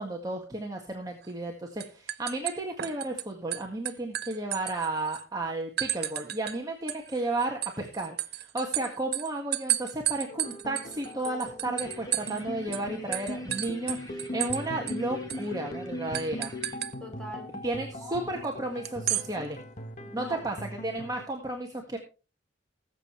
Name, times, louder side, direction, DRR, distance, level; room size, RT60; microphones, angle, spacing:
voice 1, 0.0-16.5 17.6-19.6 20.1-20.5 20.8-22.0, right 2 dB, 20° right, 1 dB, 1.7 m, -33 dB
sound 1, 1.2-1.5 1.8-3.2 3.5-5.2 5.8-6.6 6.9-12.4 12.7-12.8 13.1-14.6 14.9-15.0 15.3-15.5 16.1-16.9 18.8-19.3, right 13 dB, 60° right, 0.7 m, -32 dB
sound 2, 10.3-21.2, left 1 dB, 40° left, 1.2 m, -40 dB
sound 3, 11.8-16.8, left 1 dB, 20° left, 3.8 m, -49 dB
voice 2, 17.0-17.5 18.0-18.3 20.0-20.6, equal, 5° left, 0 dB, 4.5 m, -43 dB
20.0 x 7.5 x 3.2 m, 0.33 s
head